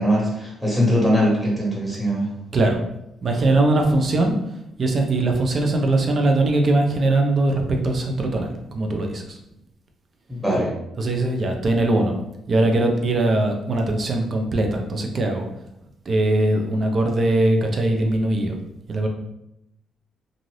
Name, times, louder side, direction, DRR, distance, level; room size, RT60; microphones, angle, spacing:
voice 1, 0.0-2.3 10.3-10.7, equal, 5° right, -4 dB, 1.4 m, -21 dB
voice 2, 3.2-4.3 4.8-9.4 10.9-12.1 12.5-15.4 16.1-18.6 18.9-19.1, right 2 dB, 45° right, 3 dB, 0.6 m, -21 dB
2.6 x 2.5 x 3.2 m, 0.84 s
cardioid pair, 90°, 0 cm